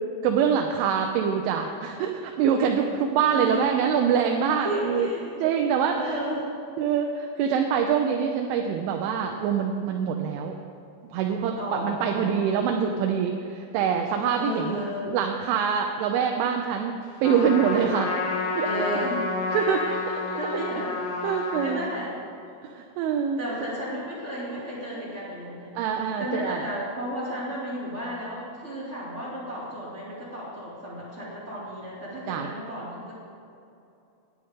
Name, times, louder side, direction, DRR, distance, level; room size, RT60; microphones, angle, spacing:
voice 1, 0.2-5.1 5.4-6.2 6.8-10.5 11.1-11.6 11.8-17.0 17.2-18.2 18.5-18.9 19.5-20.6 21.2-21.8 22.6-23.4 25.8-26.6 32.3-32.5, right 7 dB, 80° right, 3 dB, 3.0 m, -25 dB
voice 2, 3.3-3.6 4.6-5.4 5.9-6.5 11.5-12.8 14.4-15.1 18.6-19.3 19.8-20.0 20.3-21.0 21.6-22.1 23.4-25.8 26.2-33.1, equal, 25° right, -7 dB, 1.4 m, -33 dB
Trumpet, 17.2-21.9, left 3 dB, 80° left, 4.2 m, -30 dB
18.0 x 9.9 x 3.7 m, 2.7 s
omnidirectional pair, 5.9 m